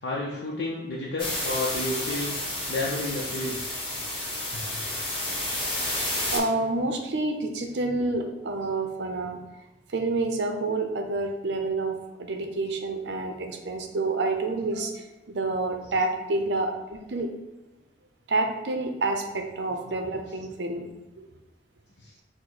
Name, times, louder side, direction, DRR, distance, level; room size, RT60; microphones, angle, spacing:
voice 1, 0.0-2.3 2.7-3.6 15.8-15.9 22.0-22.1, left 2 dB, 60° left, -4 dB, 0.6 m, -31 dB
sound 1, 1.2-6.4, left 1 dB, 30° left, 1.2 m, -31 dB
voice 2, 6.3-9.4 9.9-17.3 18.3-20.9 21.2-21.3, right 2 dB, 70° right, 4 dB, 0.6 m, -28 dB
4.7 x 2.1 x 4.0 m, 1.0 s
head